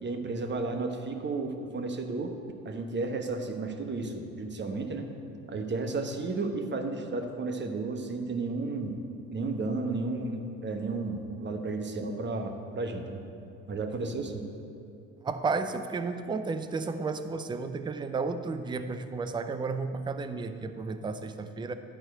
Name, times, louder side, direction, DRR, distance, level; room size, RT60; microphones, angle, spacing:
voice 1, 0.0-2.3 2.6-5.1 5.5-9.0 9.3-13.2 13.7-14.4, right 3 dB, 25° right, 4 dB, 1.1 m, -33 dB
voice 2, 15.2-21.7, right 4 dB, 10° right, 9 dB, 0.5 m, -32 dB
11.0 x 4.3 x 7.8 m, 2.6 s
hypercardioid pair, 65°, 40 cm